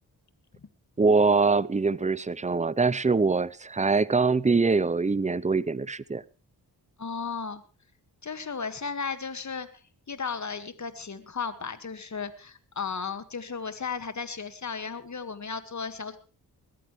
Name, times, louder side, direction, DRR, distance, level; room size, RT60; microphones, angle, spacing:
voice 1, 1.0-6.2, right 4 dB, 20° right, 20 dB, 0.7 m, -23 dB
voice 2, 7.0-7.6 8.2-16.2, left 5 dB, 45° left, 11 dB, 1.9 m, -35 dB
21.0 x 14.5 x 3.2 m, 0.34 s
cardioid pair, 55°, 40 cm